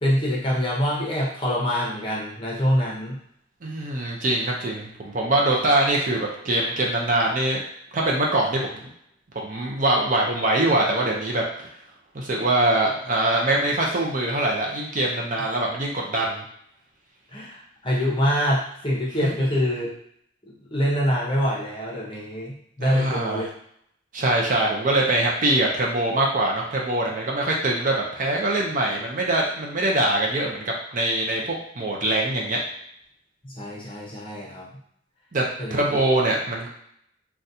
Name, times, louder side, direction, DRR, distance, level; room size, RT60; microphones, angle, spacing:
voice 1, 0.0-3.2 17.3-19.9 20.5-23.5 33.4-34.7 35.6-35.8, equal, 25° left, -4 dB, 0.8 m, -25 dB
voice 2, 3.6-7.6 7.9-8.9 9.3-11.4 12.1-16.4 22.8-23.5 24.1-32.6 35.3-36.7, right 1 dB, 40° right, -1 dB, 0.5 m, -23 dB
3.9 x 2.3 x 2.7 m, 0.71 s
head